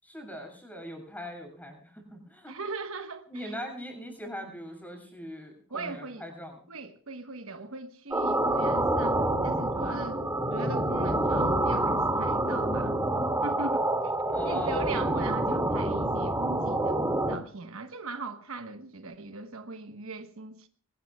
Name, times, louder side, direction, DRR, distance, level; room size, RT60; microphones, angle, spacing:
voice 1, 0.0-2.5 3.3-6.5 14.3-14.9, equal, 10° left, 7.0 m, -40 dB
voice 2, 2.5-3.5 5.7-6.3 6.7-10.2 10.5-13.0 13.4-17.0 17.3-20.7, right 3 dB, 70° right, 1.2 m, -39 dB
sound 1, 8.1-17.4, right 1 dB, 15° right, 2.2 m, -27 dB
23.5 x 18.5 x 2.3 m
head